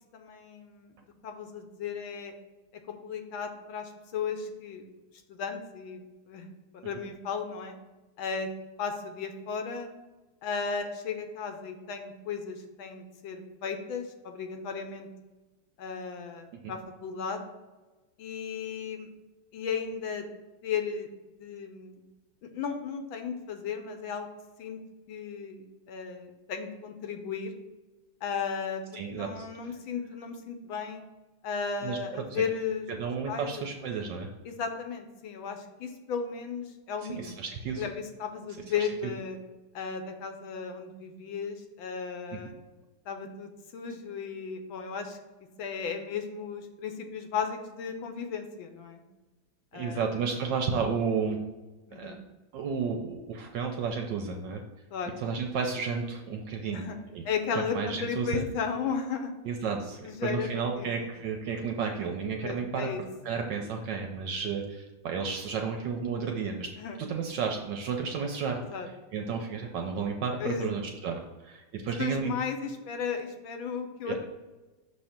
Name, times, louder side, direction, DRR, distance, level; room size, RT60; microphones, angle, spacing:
voice 1, 0.1-0.9 1.2-2.3 2.9-4.8 5.3-6.0 6.3-7.8 8.2-8.5 8.8-9.9 10.4-15.1 15.8-17.4 18.2-19.1 19.5-20.2 20.6-21.1 21.4-22.0 22.4-24.3 24.6-24.8 25.1-27.5 28.2-31.0 31.4-32.9 33.3-33.5 34.4-37.4 37.8-39.4 39.7-42.5 43.1-45.2 45.6-49.0 49.7-50.0 51.9-52.2 54.9-55.1 56.7-57.0 57.2-59.3 60.0-60.9 62.4-63.0 66.8-67.0 68.7-68.9 70.4-70.7 72.0-74.3, left 6 dB, 70° left, 5 dB, 1.4 m, -35 dB
voice 2, 28.9-29.5 31.8-32.4 32.9-34.3 37.1-37.9 49.7-51.4 51.9-52.1 52.5-54.6 55.2-56.8 57.1-57.2 57.5-58.4 59.4-62.9 63.2-66.7 67.1-68.6 69.1-72.3 74.1-74.3, right 5 dB, 70° right, 3 dB, 1.1 m, -32 dB
6.4 x 3.3 x 5.7 m, 1.2 s
omnidirectional pair, 2.4 m